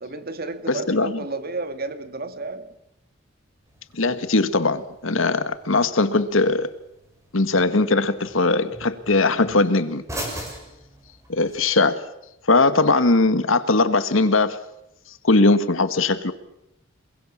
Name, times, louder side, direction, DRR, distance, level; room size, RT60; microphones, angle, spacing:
voice 1, 0.0-2.7, right 3 dB, 50° right, 1.9 m, -32 dB
voice 2, 0.7-1.2 3.9-6.7 7.3-10.0 11.3-12.0 12.5-14.6 15.2-16.3, left 3 dB, 70° left, 1.6 m, -20 dB
sound 1, 3.6-11.6, right 1 dB, 15° right, 6.3 m, -41 dB
27.5 x 21.5 x 7.3 m
head